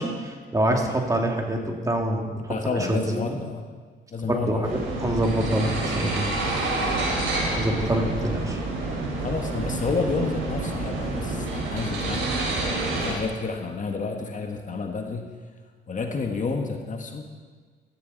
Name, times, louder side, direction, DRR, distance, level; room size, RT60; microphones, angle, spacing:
voice 1, 0.0-3.3 4.3-6.3 7.6-8.6, right 1 dB, 15° right, 2 dB, 2.3 m, -26 dB
voice 2, 2.5-3.7 4.1-4.7 7.0-7.2 9.2-15.3 15.9-17.3, left 4 dB, 40° left, 3 dB, 1.5 m, -30 dB
sound 1, 4.6-13.1, right 2 dB, 85° right, 4.3 m, -28 dB
16.0 x 13.5 x 4.1 m, 1.5 s
cardioid pair, 90°, 20 cm